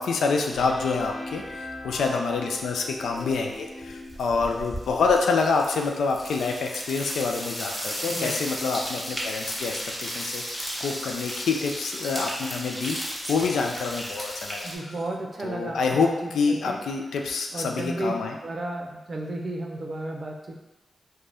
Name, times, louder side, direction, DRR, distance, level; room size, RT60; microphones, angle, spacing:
voice 1, 0.0-1.4 1.8-14.7 15.4-18.4, left 4 dB, 90° left, 2 dB, 0.3 m, -27 dB
sound 1, 0.5-4.3, left 1 dB, 25° left, 0.5 m, -39 dB
sound 2, 3.2-3.5 3.8-14.8, equal, 5° left, 1.0 m, -34 dB
voice 2, 8.1-8.5 14.6-16.8 17.5-18.1 18.4-20.6, right 2 dB, 50° right, 1 dB, 0.5 m, -33 dB
2.5 x 2.2 x 3.3 m, 1.0 s
cardioid pair, 55°, 0 cm